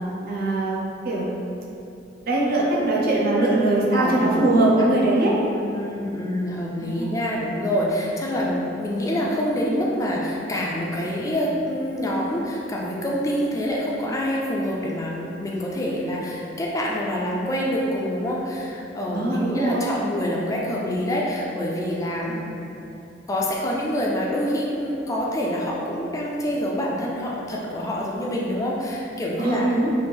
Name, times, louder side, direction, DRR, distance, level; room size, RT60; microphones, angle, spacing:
voice 1, 0.3-0.8 1.0-1.3 2.2-5.3 6.8-7.2 19.1-19.9 22.3-22.5 29.4-29.9, right 2 dB, 55° right, -4 dB, 0.6 m, -21 dB
voice 2, 3.9-4.9 5.5-22.4 23.3-29.7, equal, 20° left, -3 dB, 0.3 m, -26 dB
3.2 x 2.4 x 3.4 m, 2.8 s
head